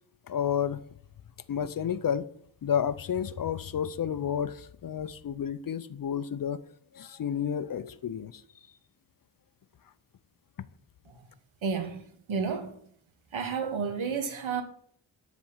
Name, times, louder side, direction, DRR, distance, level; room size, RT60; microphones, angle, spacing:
voice 1, 0.3-0.8 1.5-2.3 2.6-6.6 6.9-8.4, left 8 dB, 45° left, 0.5 m, -31 dB
voice 2, 11.6-12.9 13.3-14.6, right 5 dB, 75° right, 1.8 m, -32 dB
12.5 x 4.2 x 7.3 m
wide cardioid pair, 155°, 47 cm